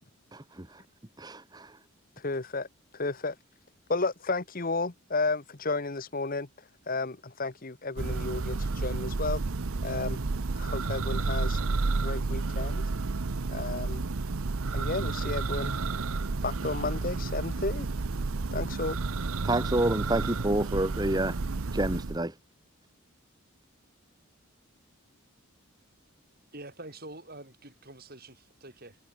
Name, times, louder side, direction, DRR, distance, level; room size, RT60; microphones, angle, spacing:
voice 1, 0.3-0.8 1.2-1.8 19.4-21.4 21.7-22.4, right 1 dB, 20° right, 1.3 m, -29 dB
voice 2, 2.2-2.7 2.9-3.4 3.9-6.5 6.9-9.4 9.8-10.2 10.6-11.6 12.0-12.9 13.5-14.0 14.7-15.7 16.4-17.9 18.5-19.0, left 3 dB, 40° left, 1.1 m, -32 dB
Church bell, 8.0-22.3, right 3 dB, 75° right, 0.8 m, -31 dB
voice 3, 26.5-29.0, right 2 dB, 45° right, 6.9 m, -46 dB
head